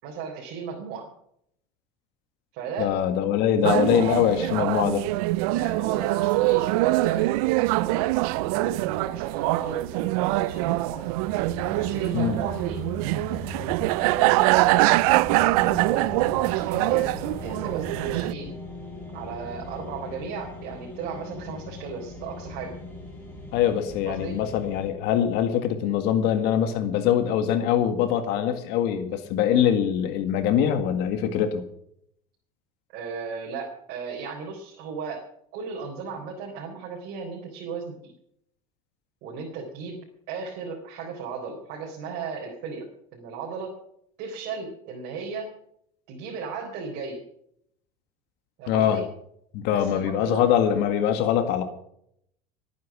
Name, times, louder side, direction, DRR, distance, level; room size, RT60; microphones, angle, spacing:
voice 1, 0.0-1.1 2.5-2.9 5.5-11.0 11.7-12.8 14.0-18.5 19.1-22.7 24.0-24.4 32.9-35.2 35.5-38.1 39.2-40.0 40.3-43.8 44.2-45.5 46.1-47.2 48.6-49.0 49.7-50.4, right 5 dB, 60° right, -1 dB, 4.1 m, -35 dB
voice 2, 2.8-5.0 12.1-12.4 23.5-31.6 48.7-49.0 49.5-51.6, left 9 dB, 65° left, 8 dB, 1.9 m, -23 dB
sound 1, 3.6-18.3, right 21 dB, 85° right, 0.5 m, -24 dB
sound 2, 11.2-24.9, left 3 dB, 10° left, 6.4 m, -40 dB
20.5 x 9.4 x 6.1 m, 0.72 s
cardioid pair, 140°, 18 cm